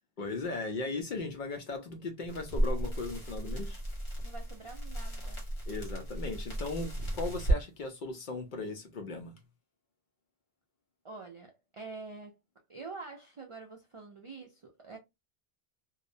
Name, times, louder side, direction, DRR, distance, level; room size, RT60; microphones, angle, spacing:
voice 1, 0.2-3.8 5.7-9.4, left 3 dB, 60° left, 0.6 m, -37 dB
sound 1, 2.3-7.6, right 1 dB, 80° left, 1.3 m, -34 dB
voice 2, 4.2-5.4 11.0-12.4 12.7-15.0, right 4 dB, 55° right, 0.3 m, -46 dB
2.6 x 2.0 x 2.5 m
omnidirectional pair, 1.1 m